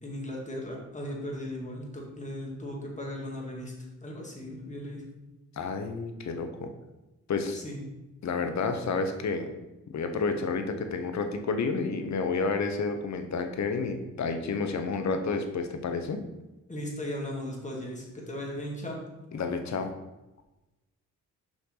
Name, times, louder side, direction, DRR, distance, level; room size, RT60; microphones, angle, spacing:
voice 1, 0.0-3.7 4.0-5.0 7.5-7.8 16.7-19.0, left 1 dB, 20° left, -2 dB, 2.3 m, -37 dB
voice 2, 5.6-6.7 7.3-7.6 8.2-9.5 9.9-16.2 19.3-19.9, left 4 dB, 60° left, 7 dB, 1.0 m, -30 dB
6.8 x 5.7 x 3.9 m, 1.0 s
cardioid pair, 75°, 32 cm